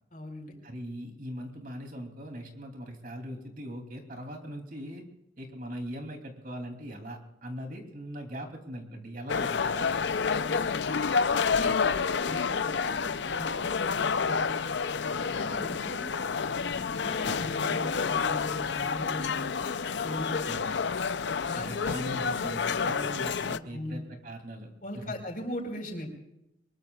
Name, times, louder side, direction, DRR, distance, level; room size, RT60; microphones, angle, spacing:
voice 1, 0.1-0.5 10.3-11.0 11.5-11.9 12.2-13.7 14.0-14.6 15.0-16.0 16.5-19.6 20.0-20.5 21.3-21.7 23.3-24.0 24.8-26.1, equal, 45° left, 2 dB, 4.6 m, -40 dB
voice 2, 0.6-5.0 5.4-10.0 20.4-20.7 21.5-25.2, equal, 45° right, 4 dB, 3.0 m, -40 dB
sound 1, 9.3-23.6, left 5 dB, 70° left, 0.6 m, -29 dB
24.5 x 21.5 x 2.4 m, 0.86 s
head